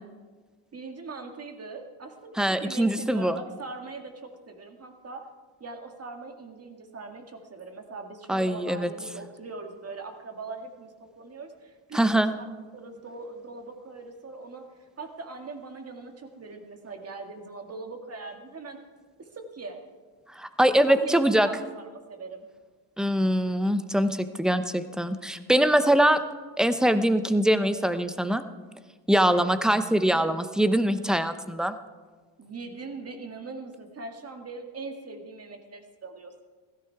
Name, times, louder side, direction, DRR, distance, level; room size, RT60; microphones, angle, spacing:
voice 1, 0.7-5.3 5.6-12.4 12.7-14.7 15.0-18.8 19.2-19.8 20.8-22.5 25.7-26.1 29.1-29.5 32.4-36.4, right 3 dB, 30° right, 5 dB, 2.0 m, -41 dB
voice 2, 2.4-3.4 8.3-8.9 11.9-12.3 20.4-21.5 23.0-26.2 26.6-28.4 29.1-31.7, right 1 dB, ahead, 11 dB, 0.6 m, -23 dB
16.0 x 14.0 x 4.7 m, 1.4 s
cardioid pair, 110°, 48 cm